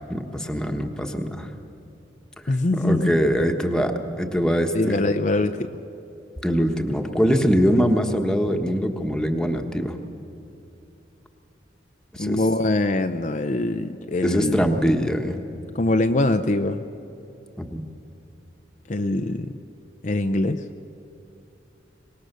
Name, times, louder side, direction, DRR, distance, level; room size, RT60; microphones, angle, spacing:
voice 1, 0.1-1.5 2.4-5.0 6.4-10.0 12.1-12.4 14.2-15.4 17.6-17.8, equal, 5° left, 4 dB, 1.3 m, -23 dB
voice 2, 2.5-3.1 4.7-5.7 12.2-14.6 15.7-16.8 18.9-19.6 20.0-20.6, left 2 dB, 45° left, 8 dB, 0.6 m, -23 dB
24.0 x 20.0 x 6.8 m, 2.9 s
head